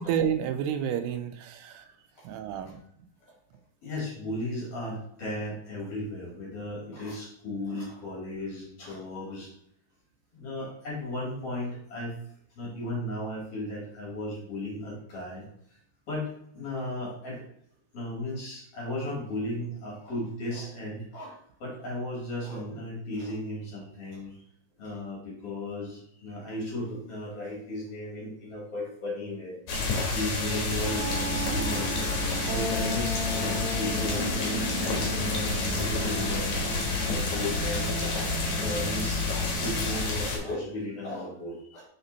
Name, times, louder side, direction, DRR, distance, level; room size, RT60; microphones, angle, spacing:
voice 1, 0.0-1.9 2.2-2.8, right 8 dB, 85° right, 9 dB, 2.6 m, -30 dB
voice 2, 2.2-2.6 3.2-3.3 3.8-9.5 10.3-12.2 12.5-15.4 16.1-17.4 17.9-21.3 21.6-24.4 24.8-29.6 30.1-32.0 32.4-36.5 36.9-38.0 38.6-41.8, left 1 dB, 45° left, -5 dB, 2.7 m, -35 dB
sound 1, 29.7-40.4, left 3 dB, 60° left, 2.3 m, -29 dB
sound 2, 30.9-39.9, right 1 dB, 60° right, 2.7 m, -35 dB
5.9 x 4.3 x 4.0 m, 0.68 s
omnidirectional pair, 4.5 m